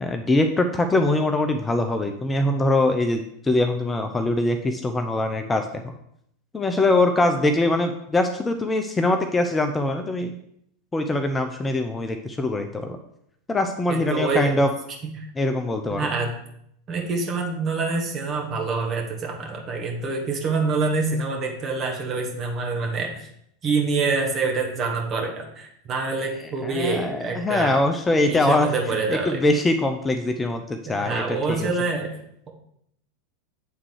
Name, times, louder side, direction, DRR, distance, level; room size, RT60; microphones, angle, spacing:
voice 1, 0.0-5.8 6.5-10.4 10.9-13.0 13.5-14.7 15.4-16.1 26.6-28.7 29.1-31.7, left 2 dB, 15° left, 6 dB, 0.6 m, -23 dB
voice 2, 13.9-14.5 15.0-15.2 15.9-16.3 16.9-23.3 23.6-27.8 28.2-29.4 30.8-32.2, right 4 dB, 35° right, 1 dB, 1.6 m, -26 dB
8.1 x 3.7 x 4.7 m, 0.72 s
figure-of-eight pair, 85°, 0 cm